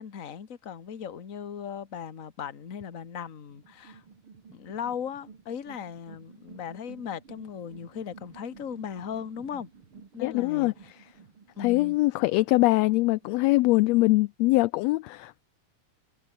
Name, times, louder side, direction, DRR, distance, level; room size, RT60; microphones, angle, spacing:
voice 1, 0.0-4.0 4.5-9.7 10.1-10.7 11.6-12.0, left 8 dB, 35° left, 1.5 m, -37 dB
sound 1, 3.5-13.5, right 6 dB, 45° right, 3.4 m, -52 dB
voice 2, 10.2-10.7 11.6-15.4, left 20 dB, 80° left, 1.6 m, -23 dB
omnidirectional pair, 3.3 m